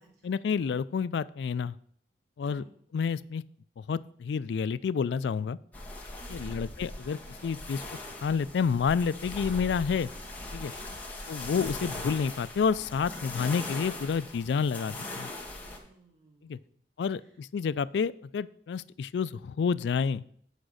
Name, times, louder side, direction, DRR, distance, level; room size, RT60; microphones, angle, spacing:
voice 1, 0.2-1.8 2.4-2.6 2.9-3.4 3.8-5.6 6.3-7.8 8.2-10.1 10.5-10.7 11.3-15.3 16.4-16.6 17.0-20.2, left 6 dB, 75° left, 18 dB, 0.3 m, -29 dB
sound 1, 5.7-15.8, left 2 dB, 10° left, 1.7 m, -40 dB
voice 2, 6.2-6.6 10.8-11.1 15.6-16.7, right 2 dB, 85° right, -3 dB, 4.0 m, -55 dB
8.4 x 5.0 x 6.4 m, 0.63 s
head